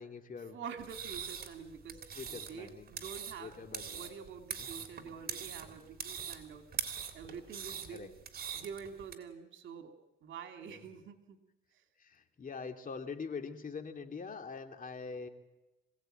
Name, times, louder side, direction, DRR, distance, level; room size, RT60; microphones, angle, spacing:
voice 1, 0.0-0.6 2.1-2.9 3.4-4.1 4.6-4.9 6.5-6.6 7.9-8.1 10.7-11.0 12.0-15.3, left 5 dB, 45° left, 5 dB, 2.6 m, -44 dB
voice 2, 0.5-2.0 2.3-8.1 8.5-11.4 11.7-11.8, right 7 dB, 70° right, 6 dB, 2.7 m, -47 dB
sound 1, 0.8-9.1, right 7 dB, 50° right, 3.2 m, -43 dB
26.5 x 17.0 x 9.0 m, 1.0 s
cardioid pair, 90°, 20 cm